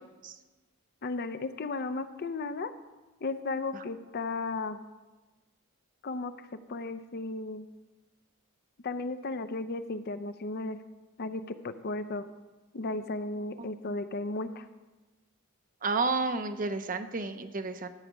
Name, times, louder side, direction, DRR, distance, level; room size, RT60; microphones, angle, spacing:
voice 1, 1.0-2.7 3.2-4.8 6.0-6.3 6.7-7.6 8.8-10.8 11.2-12.3 12.7-14.7, left 3 dB, 45° left, 11 dB, 0.5 m, -34 dB
voice 2, 15.8-17.9, right 3 dB, 40° right, 9 dB, 0.7 m, -31 dB
14.0 x 4.9 x 8.1 m, 1.2 s
head